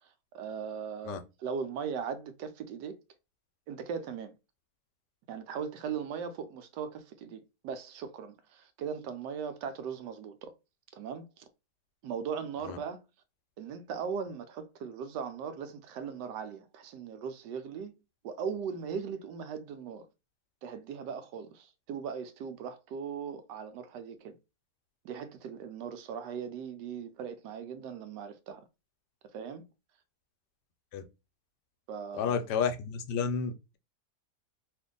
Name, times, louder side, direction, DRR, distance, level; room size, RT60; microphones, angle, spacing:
voice 1, 0.0-2.9 3.7-4.3 5.3-10.5 10.9-11.4 12.0-13.0 13.6-17.9 18.2-20.1 20.6-24.4 25.0-28.6 29.3-29.7 31.9-32.5, right 6 dB, 85° right, 1.2 m, -39 dB
voice 2, 32.1-33.8, left 6 dB, 80° left, 1.2 m, -31 dB
2.8 x 2.6 x 3.7 m
omnidirectional pair, 1.8 m